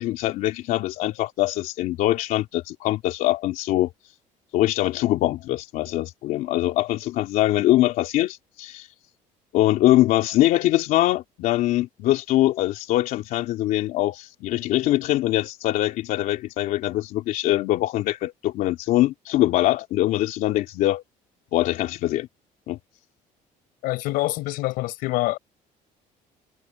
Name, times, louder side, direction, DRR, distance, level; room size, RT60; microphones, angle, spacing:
voice 1, 0.0-3.9 4.5-8.9 9.5-21.0 21.5-22.3 22.7-22.8, left 15 dB, 70° left, 3.0 m, -23 dB
voice 2, 23.8-25.4, left 19 dB, 85° left, 4.5 m, -25 dB
cardioid pair, 155°, 15 cm